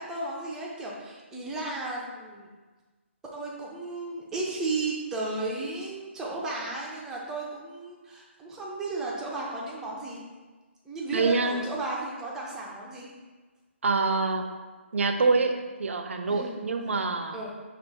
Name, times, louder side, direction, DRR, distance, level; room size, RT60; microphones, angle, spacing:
voice 1, 0.0-2.5 3.3-10.2 10.9-13.1 16.3-16.5 17.3-17.5, right 2 dB, 10° right, -4 dB, 0.5 m, -34 dB
voice 2, 11.1-11.6 13.8-14.4 14.9-15.5 15.8-17.4, right 3 dB, 75° right, 5 dB, 0.5 m, -25 dB
5.3 x 2.5 x 3.4 m, 1.3 s
hypercardioid pair, 155°, 7 cm